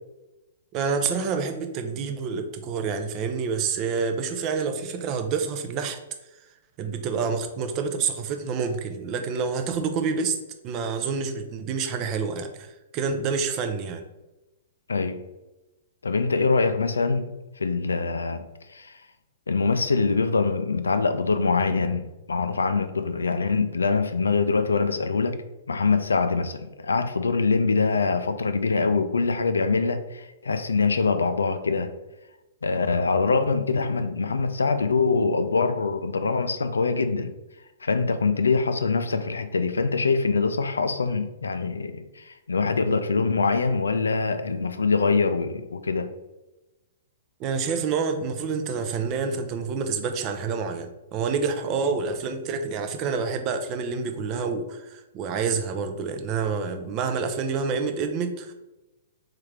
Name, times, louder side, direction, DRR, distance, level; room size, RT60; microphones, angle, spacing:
voice 1, 0.7-6.0 6.8-10.4 10.6-14.0 47.4-58.5, right 5 dB, 30° right, 0.5 m, -28 dB
voice 2, 16.0-17.3 17.6-18.4 18.7-19.0 19.5-25.4 25.7-31.9 32.6-37.3 37.8-46.1, left 4 dB, 70° left, 0.3 m, -24 dB
3.7 x 3.3 x 3.2 m
figure-of-eight pair, 110°, 0 cm